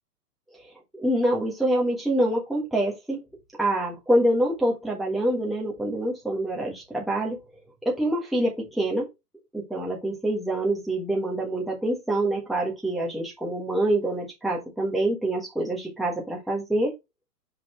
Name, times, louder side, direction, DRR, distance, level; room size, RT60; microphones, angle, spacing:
voice 1, 1.0-3.2 3.6-7.4 7.8-9.1 9.5-16.9, right 1 dB, ahead, 1.3 m, -26 dB
5.6 x 5.1 x 4.4 m
hypercardioid pair, 155°, 47 cm